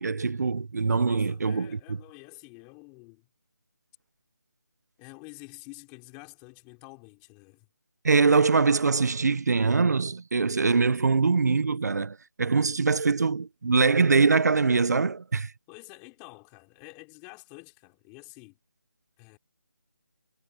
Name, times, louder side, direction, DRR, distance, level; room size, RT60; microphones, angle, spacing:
voice 1, 0.0-1.8 8.0-15.5, right 4 dB, 60° right, 0.8 m, -23 dB
voice 2, 1.0-3.3 5.0-7.7 15.7-18.6 19.2-19.4, left 29 dB, 10° left, 3.9 m, -48 dB
figure-of-eight pair, 170°, 10 cm